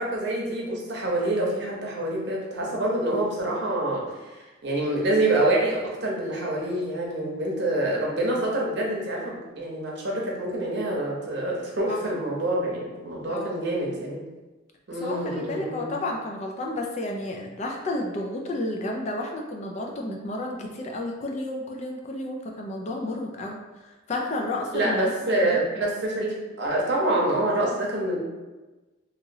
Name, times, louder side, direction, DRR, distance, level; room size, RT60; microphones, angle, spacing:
voice 1, 0.0-14.2 14.9-15.9 24.7-28.2, right 1 dB, 60° right, -2 dB, 0.7 m, -26 dB
voice 2, 14.9-23.6 24.1-25.1 25.4-25.6, left 2 dB, 35° left, 1 dB, 0.3 m, -31 dB
2.9 x 2.7 x 2.6 m, 1.2 s
head